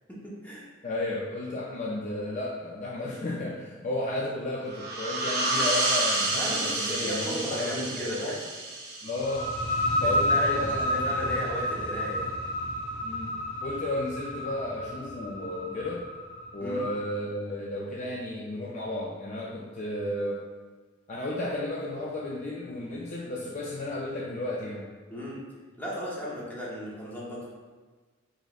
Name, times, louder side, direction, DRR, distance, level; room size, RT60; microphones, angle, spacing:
voice 1, 0.1-0.7 6.4-8.4 10.0-12.3 16.6-16.9 25.1-25.4 25.8-27.5, equal, 10° left, -6 dB, 0.8 m, -35 dB
voice 2, 0.8-8.2 9.0-9.5 10.0-11.4 13.0-13.3 13.6-16.1 16.5-20.4 21.1-24.9, left 1 dB, 40° left, -3 dB, 0.4 m, -33 dB
sound 1, 4.7-10.0, right 2 dB, 55° right, 0.9 m, -30 dB
sound 2, 9.2-16.7, equal, 75° left, 0.9 m, -30 dB
5.0 x 3.0 x 2.4 m, 1.4 s
head